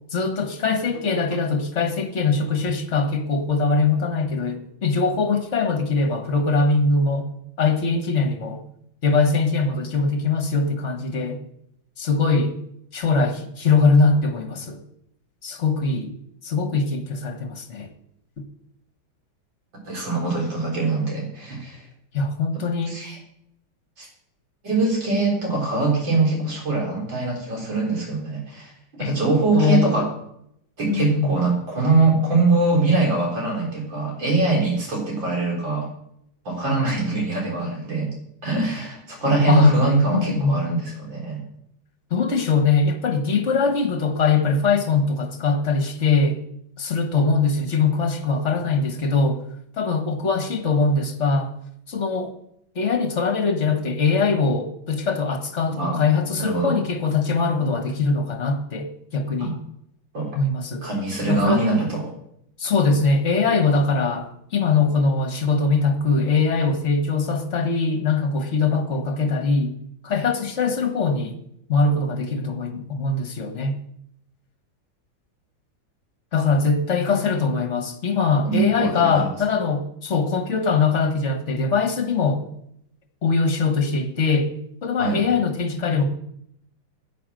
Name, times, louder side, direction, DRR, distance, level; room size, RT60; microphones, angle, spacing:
voice 1, 0.1-7.3 7.6-8.6 9.0-11.4 12.0-12.5 12.9-14.8 15.4-16.1 16.4-17.9 18.4-18.5 22.1-23.0 29.0-29.2 29.5-30.0 30.9-31.3 39.5-39.8 40.1-40.6 42.1-46.4 46.8-49.4 49.8-51.5 51.9-52.3 52.7-59.6 60.3-60.9 61.3-61.6 62.6-69.8 70.0-71.4 71.7-73.8 76.3-82.4 83.2-84.5 84.8-86.1, left 4 dB, 40° left, 6 dB, 1.6 m, -22 dB
voice 2, 19.8-21.8 22.9-23.2 24.0-24.1 24.6-28.7 29.0-30.0 30.8-35.9 36.4-38.1 38.4-41.4 55.7-56.0 56.3-56.7 59.4-59.5 60.1-60.3 60.8-62.1 78.4-79.3 85.0-85.2, right 3 dB, 70° right, -1 dB, 5.0 m, -22 dB
10.5 x 8.7 x 7.7 m, 0.75 s
omnidirectional pair, 2.2 m